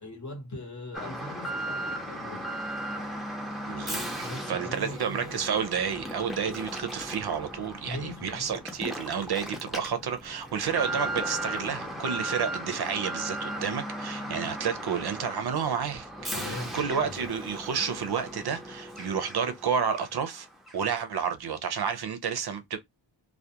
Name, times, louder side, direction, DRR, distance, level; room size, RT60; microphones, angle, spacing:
voice 1, 0.0-2.5 4.2-5.4 7.9-8.6 14.3-14.5 16.3-17.3, left 1 dB, 40° left, 1.0 m, -40 dB
Alarm, 0.9-19.6 19.9-20.0 20.7-20.8, right 1 dB, ahead, 0.5 m, -36 dB
voice 2, 3.6-16.1 16.4-20.5 20.7-22.8, right 7 dB, 60° right, 0.5 m, -30 dB
2.3 x 2.2 x 2.7 m
wide cardioid pair, 115°, 43 cm